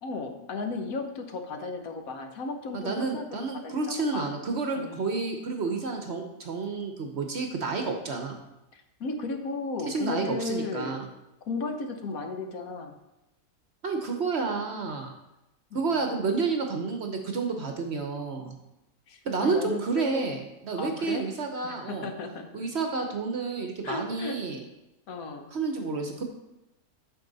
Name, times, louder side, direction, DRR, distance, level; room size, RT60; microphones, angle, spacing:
voice 1, 0.0-4.3 4.8-5.0 8.7-11.0 11.5-12.9 15.7-15.9 19.1-20.3 20.8-21.2 21.6-22.7 23.8-24.4 25.1-25.5, left 3 dB, 70° left, 5 dB, 1.3 m, -35 dB
voice 2, 2.7-8.4 9.9-11.1 13.8-15.1 15.7-18.5 19.2-22.1 22.5-24.6 25.5-26.2, right 4 dB, 50° right, 4 dB, 1.0 m, -30 dB
8.5 x 6.2 x 4.0 m, 0.93 s
omnidirectional pair, 1.6 m